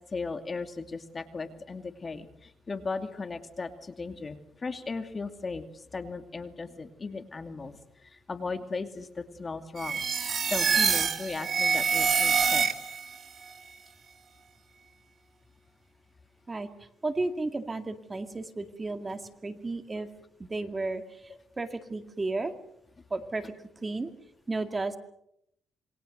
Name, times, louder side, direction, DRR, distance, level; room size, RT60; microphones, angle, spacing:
voice 1, 0.1-7.7 8.0-10.0 10.5-12.7, left 4 dB, 35° left, 8 dB, 2.5 m, -37 dB
sound 1, 9.8-13.1, right 6 dB, 45° right, 2.4 m, -26 dB
voice 2, 17.0-20.1 20.4-22.5 23.1-23.5 23.8-24.1 24.5-25.0, right 3 dB, 25° right, 8 dB, 2.2 m, -33 dB
27.5 x 23.0 x 6.6 m, 0.76 s
cardioid pair, 90°, 0 cm